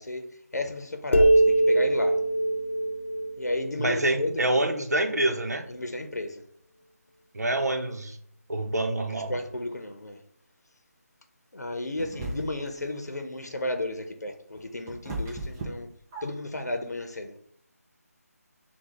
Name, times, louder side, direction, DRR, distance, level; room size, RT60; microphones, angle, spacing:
voice 1, 0.5-1.3 1.7-2.1 3.4-4.0 5.8-6.3 9.3-9.9 11.6-13.9 14.2-14.3 14.7-15.3 15.7-15.9 16.2-17.2, left 1 dB, 90° left, 5 dB, 0.7 m, -32 dB
sound 1, 1.1-4.6, right 1 dB, 50° left, 0.5 m, -23 dB
voice 2, 3.8-5.7 7.3-8.2 8.5-9.5, right 1 dB, 80° right, 5 dB, 0.8 m, -26 dB
sound 2, 12.0-12.8 14.3-16.6, right 2 dB, 10° right, 0.5 m, -36 dB
5.9 x 2.3 x 3.6 m, 0.68 s
figure-of-eight pair, 160°, 9 cm